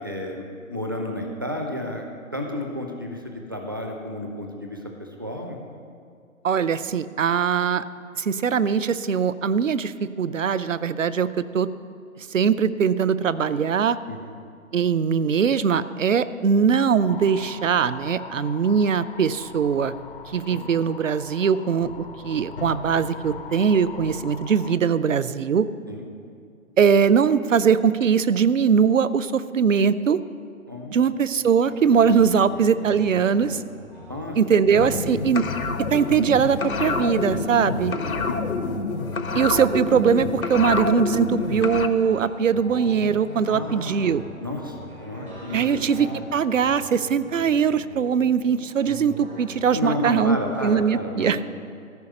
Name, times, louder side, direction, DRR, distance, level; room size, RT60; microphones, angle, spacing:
voice 1, 0.0-5.6 14.1-14.3 20.5-20.6 25.9-26.1 30.7-31.0 34.1-34.5 35.1-35.2 38.3-38.4 43.5-46.1 49.7-51.4, left 1 dB, 15° right, 2 dB, 0.4 m, -32 dB
voice 2, 6.4-7.8 8.2-11.7 12.3-14.0 14.7-19.9 20.3-25.7 26.8-30.2 30.9-33.6 34.4-35.4 35.9-37.9 39.3-44.2 45.5-51.4, right 6 dB, 65° right, 15 dB, 0.6 m, -21 dB
sound 1, 17.1-24.8, left 6 dB, 45° left, 0.4 m, -40 dB
sound 2, 31.6-50.8, right 1 dB, 90° right, 3.5 m, -41 dB
sound 3, 34.7-41.9, left 4 dB, 85° left, 0.8 m, -27 dB
14.0 x 5.0 x 7.8 m, 2.3 s
figure-of-eight pair, 135°, 42 cm